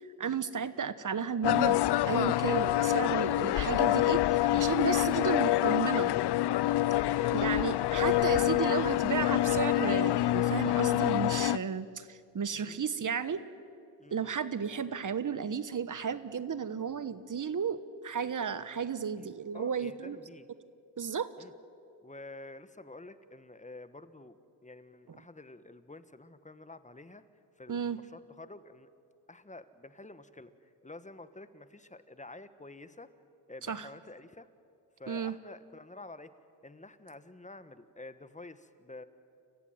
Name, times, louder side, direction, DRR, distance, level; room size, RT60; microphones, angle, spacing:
voice 1, 0.2-1.8 2.0-6.1 7.3-13.4 14.1-20.2 21.0-21.3 25.1-25.2 27.7-28.0 33.7-33.9 35.1-35.3, right 6 dB, 40° right, 14 dB, 1.2 m, -33 dB
sound 1, 1.4-11.6, left 14 dB, 60° left, 0.5 m, -26 dB
voice 2, 6.8-8.3 12.5-12.8 14.0-14.3 19.2-19.3 19.5-20.5 21.4-21.5 22.0-24.4 24.6-27.2 27.6-28.9 29.3-30.5 30.8-33.1 33.5-34.5 35.0-36.3 36.6-39.0, left 2 dB, 15° left, 12 dB, 1.3 m, -49 dB
29.5 x 15.5 x 9.3 m, 2.5 s
cardioid pair, 70°, 46 cm